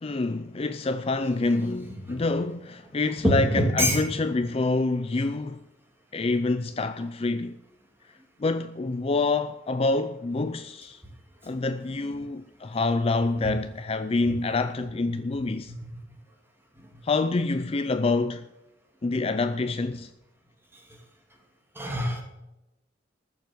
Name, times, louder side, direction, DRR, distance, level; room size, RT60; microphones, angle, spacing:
voice 1, 0.0-5.6 6.1-7.6 8.4-11.0 11.4-15.7 17.0-18.5 19.0-20.1, left 3 dB, 30° left, 0.4 m, -27 dB
voice 2, 3.2-4.0 13.4-13.5 14.3-14.4 15.7-15.9 16.8-16.9 20.7-21.0 21.7-22.2, equal, 10° right, 2.7 m, -26 dB
14.5 x 7.1 x 7.8 m
head